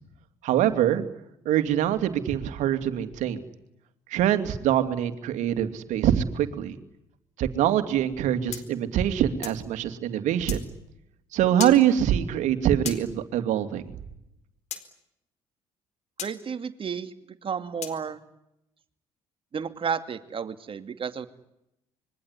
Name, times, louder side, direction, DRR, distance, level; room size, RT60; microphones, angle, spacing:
voice 1, 0.4-1.0 1.4-3.4 4.1-6.7 7.4-10.7 11.3-13.8, right 10 dB, 75° right, 10 dB, 2.8 m, -24 dB
sound 1, 8.5-9.6 10.5-10.6 11.6-11.8 12.9-13.0 14.7-14.8 16.2-16.3 17.8-18.0, left 10 dB, 65° left, 4.2 m, -35 dB
voice 2, 16.2-17.1 17.4-18.2 19.5-21.3, right 6 dB, 45° right, 10 dB, 2.5 m, -32 dB
26.0 x 23.0 x 9.9 m, 0.82 s
supercardioid pair, 65°, 13 cm